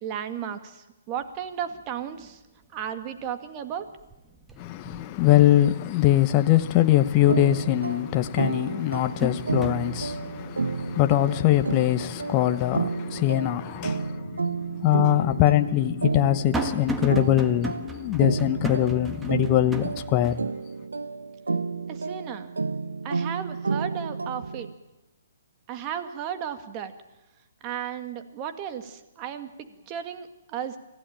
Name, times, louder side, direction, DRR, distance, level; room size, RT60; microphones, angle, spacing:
voice 1, 0.0-2.4 2.7-3.9 21.9-22.5 23.0-24.7 25.7-26.9 27.6-29.5 29.9-30.8, right 9 dB, 30° right, 2.1 m, -34 dB
sound 1, 1.2-1.3 1.7-2.3 2.6-3.4 3.7-6.0 6.4-6.5 7.9-8.0 8.5-13.7 14.1-14.2 15.1-20.4, right 2 dB, 10° right, 1.6 m, -37 dB
voice 2, 4.6-20.3, left 14 dB, 30° left, 0.9 m, -22 dB
sound 2, 7.3-24.7, right 4 dB, 80° right, 1.3 m, -31 dB
26.0 x 15.5 x 9.0 m
figure-of-eight pair, 130°, 0 cm